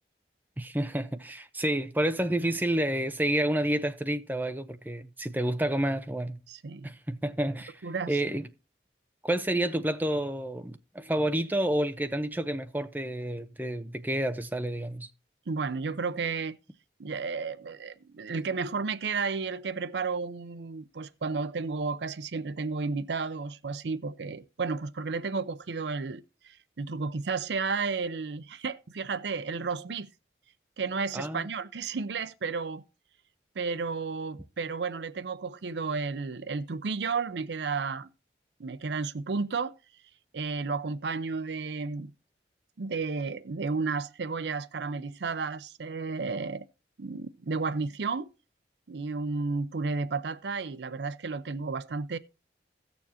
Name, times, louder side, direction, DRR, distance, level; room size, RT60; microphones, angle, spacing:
voice 1, 0.6-6.4 6.8-8.5 9.2-15.1 31.1-31.5, right 1 dB, 10° right, 0.6 m, -29 dB
voice 2, 6.5-6.9 7.8-8.2 15.5-16.6 17.0-30.1 30.8-32.8 33.6-38.1 38.6-39.8 40.3-42.1 42.8-46.7 47.0-48.3 48.9-52.2, right 4 dB, 80° right, 0.5 m, -32 dB
16.5 x 7.0 x 2.8 m
head